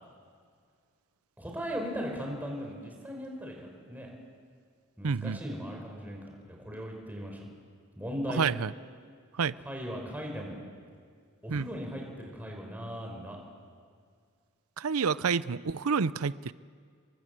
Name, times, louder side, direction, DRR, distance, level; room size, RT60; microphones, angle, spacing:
voice 1, 1.4-4.1 5.0-7.5 8.0-8.4 9.6-10.6 11.4-13.4, equal, 10° right, 1 dB, 4.8 m, -38 dB
voice 2, 5.0-5.4 8.4-8.7 9.4-9.5 11.5-11.6 14.8-16.5, right 5 dB, 90° right, 17 dB, 0.6 m, -28 dB
29.5 x 23.5 x 7.8 m, 2.1 s
head